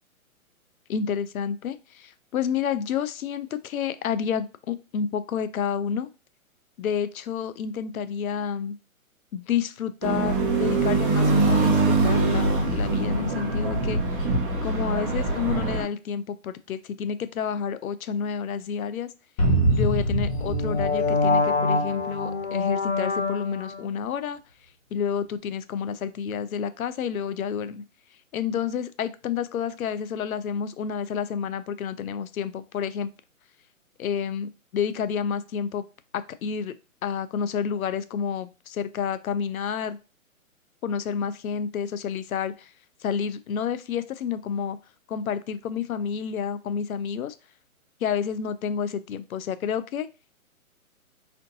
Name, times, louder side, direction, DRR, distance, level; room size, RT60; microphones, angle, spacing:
voice 1, 0.9-6.1 6.8-8.8 9.3-14.0 14.6-19.1 19.7-24.4 24.9-27.8 28.3-33.1 34.0-35.8 36.1-36.7 37.0-40.0 40.8-42.7 43.0-44.8 45.1-47.3 48.0-50.1, left 7 dB, 75° left, 13 dB, 0.5 m, -29 dB
sound 1, 10.0-15.8, right 3 dB, 40° right, 0.9 m, -23 dB
sound 2, 19.4-23.8, left 1 dB, 25° left, 0.7 m, -24 dB
4.3 x 2.6 x 2.6 m, 0.31 s
hypercardioid pair, 140°, 43 cm